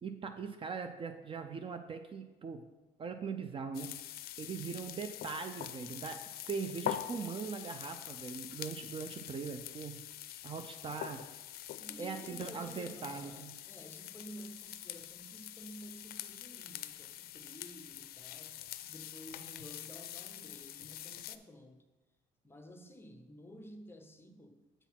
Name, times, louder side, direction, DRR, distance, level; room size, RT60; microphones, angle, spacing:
voice 1, 0.0-2.7 3.0-3.9 4.4-10.0 10.4-11.2 12.0-13.5, right 5 dB, 30° right, 0.5 m, -41 dB
sound 1, 3.7-21.4, left 12 dB, 65° left, 0.4 m, -45 dB
voice 2, 11.8-21.9 22.4-24.6, equal, 15° left, 0.8 m, -52 dB
8.1 x 4.1 x 5.8 m
cardioid pair, 110°, 17 cm